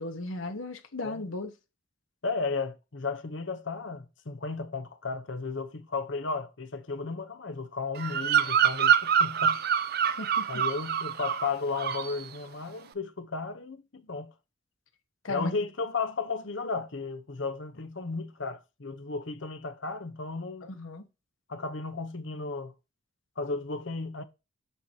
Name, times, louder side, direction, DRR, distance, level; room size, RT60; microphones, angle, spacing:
voice 1, 0.0-1.5 10.0-10.5 15.2-15.6 20.6-21.0, left 2 dB, 80° left, 1.2 m, -36 dB
voice 2, 2.2-9.6 10.5-14.3 15.3-20.7 21.5-22.7 23.4-24.2, left 4 dB, 65° left, 0.9 m, -34 dB
Bird vocalization bird call bird song, 8.0-11.5 11.8-12.2, right 8 dB, 50° right, 0.5 m, -25 dB
6.9 x 6.5 x 2.9 m
head